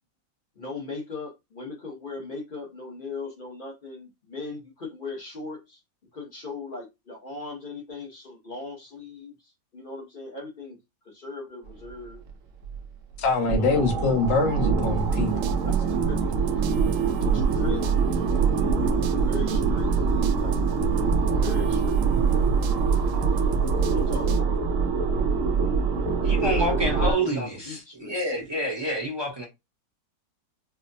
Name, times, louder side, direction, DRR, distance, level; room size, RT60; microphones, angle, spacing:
voice 1, 0.6-5.8 6.1-10.8 11.0-12.2 13.5-14.2 15.6-16.2 17.3-17.8 19.2-19.9 20.4-20.7 21.4-22.4 23.9-24.6 26.3-28.2, left 3 dB, 40° left, 0.8 m, -38 dB
breathing thro didgerido, 12.3-12.4 12.6-12.8 13.2-27.1, right 5 dB, 70° right, 0.7 m, -24 dB
voice 2, 13.2-15.3, left 3 dB, 80° left, 1.6 m, -24 dB
sound 1, 14.8-24.4, right 6 dB, 85° right, 1.3 m, -32 dB
voice 3, 26.2-29.5, equal, 20° right, 0.6 m, -28 dB
4.8 x 2.1 x 2.6 m
omnidirectional pair, 2.0 m